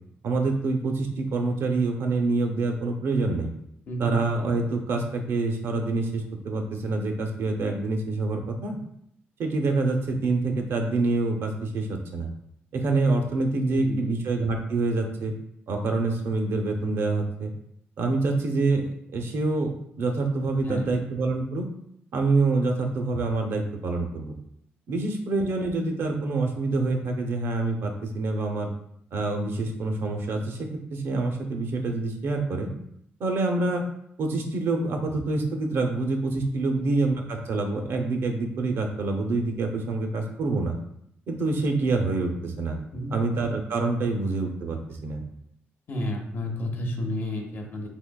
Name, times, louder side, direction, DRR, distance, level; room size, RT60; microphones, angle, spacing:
voice 1, 0.2-3.5 4.0-8.8 9.4-12.3 12.7-15.3 15.7-17.5 18.0-19.7 20.0-21.7 22.1-24.4 24.9-28.7 29.1-32.7 33.2-33.8 34.2-40.8 41.3-42.8 43.1-45.2, right 3 dB, 70° right, 3 dB, 0.5 m, -26 dB
voice 2, 3.9-4.2 13.7-14.2 20.7-21.0 36.7-36.9 42.9-43.2 45.9-47.9, left 1 dB, 50° left, 2 dB, 0.6 m, -31 dB
3.6 x 2.7 x 2.2 m, 0.73 s
cardioid pair, 115°, 4 cm